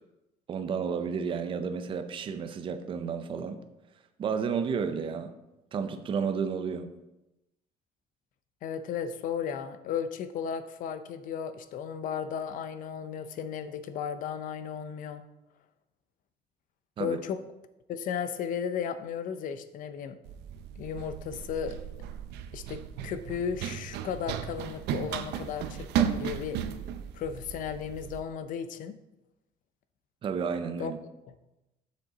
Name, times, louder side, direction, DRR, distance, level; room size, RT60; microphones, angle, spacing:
voice 1, 0.5-3.6 4.2-5.3 5.7-6.9 17.0-17.2 30.2-31.0, right 6 dB, 30° right, 9 dB, 0.5 m, -31 dB
voice 2, 8.6-15.2 17.0-17.4 17.9-20.2 20.8-21.8 22.5-26.6 27.1-29.0 30.8-30.9, left 7 dB, 55° left, 11 dB, 0.6 m, -35 dB
Run, 20.3-28.2, right 9 dB, 85° right, 0.6 m, -35 dB
7.4 x 6.3 x 4.0 m, 0.96 s
cardioid pair, 165°, 17 cm